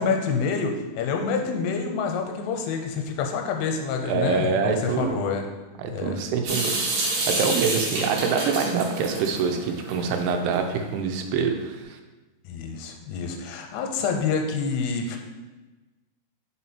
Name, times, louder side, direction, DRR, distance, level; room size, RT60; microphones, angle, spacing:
voice 1, 0.0-5.5 5.9-6.2 12.5-15.2, left 5 dB, 85° left, 3 dB, 2.7 m, -27 dB
voice 2, 4.1-5.2 5.8-12.0, right 5 dB, 85° right, 5 dB, 2.7 m, -25 dB
Water tap faucet / Sink (filling or washing) / Drip, 6.5-10.6, right 2 dB, 60° right, 2.1 m, -29 dB
5.5 x 4.3 x 4.3 m, 1.2 s
omnidirectional pair, 4.8 m